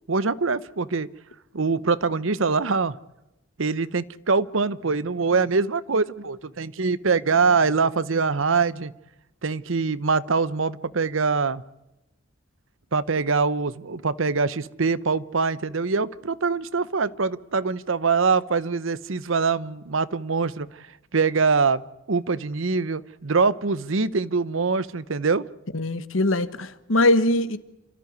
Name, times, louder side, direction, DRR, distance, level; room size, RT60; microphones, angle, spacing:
voice 1, 0.1-1.1 1.5-3.0 3.6-8.9 9.4-11.6 12.9-20.9 21.1-21.8 22.1-25.5, right 4 dB, 80° right, 0.8 m, -23 dB
voice 2, 25.7-27.6, left 1 dB, 85° left, 1.4 m, -21 dB
28.5 x 13.5 x 9.6 m
head